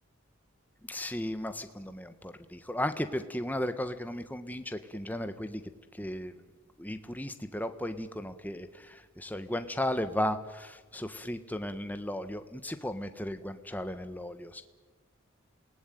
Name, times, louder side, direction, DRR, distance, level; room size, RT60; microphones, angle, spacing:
voice 1, 0.9-5.6 6.0-6.3 6.8-14.6, left 1 dB, 10° left, 9 dB, 1.4 m, -35 dB
27.5 x 19.5 x 9.3 m, 1.3 s
head